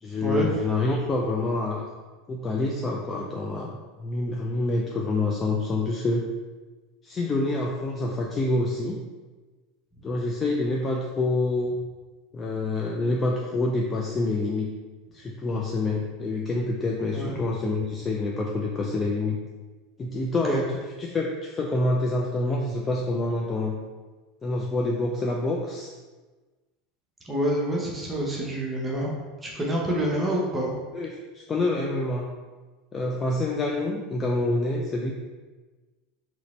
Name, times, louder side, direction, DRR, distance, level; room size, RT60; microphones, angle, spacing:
voice 1, 0.0-1.9 2.3-6.3 7.0-9.0 10.0-11.8 12.3-14.7 15.1-19.4 20.0-20.6 21.1-23.8 24.4-25.9 30.9-31.1 31.3-32.3 32.9-35.1, left 2 dB, 25° left, -1 dB, 0.5 m, -27 dB
voice 2, 27.2-29.1 29.4-30.8, right 1 dB, 15° right, -3 dB, 0.9 m, -27 dB
3.9 x 3.0 x 4.2 m, 1.3 s
figure-of-eight pair, 75°, 0 cm